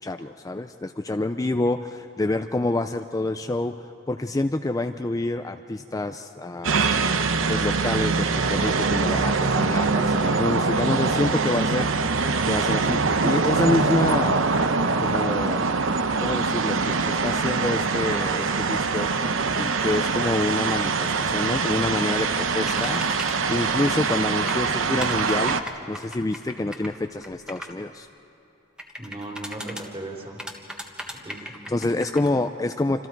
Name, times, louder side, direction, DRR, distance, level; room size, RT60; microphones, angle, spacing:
voice 1, 0.0-6.9 7.5-11.9 12.4-13.0 13.2-14.5 15.0-15.7 16.2-19.2 19.5-25.6 25.9-28.1 31.3-33.1, left 2 dB, 20° left, 7 dB, 0.4 m, -27 dB
sound 1, 6.6-25.6, right 4 dB, 80° right, 0.9 m, -23 dB
sound 2, 22.7-23.3 23.9-24.2 24.5-27.7 28.8-29.8 30.4-32.3, equal, 5° right, 1.5 m, -37 dB
voice 2, 29.0-30.4 31.2-31.8, right 2 dB, 30° right, -1 dB, 3.5 m, -37 dB
27.5 x 26.5 x 4.6 m, 2.9 s
head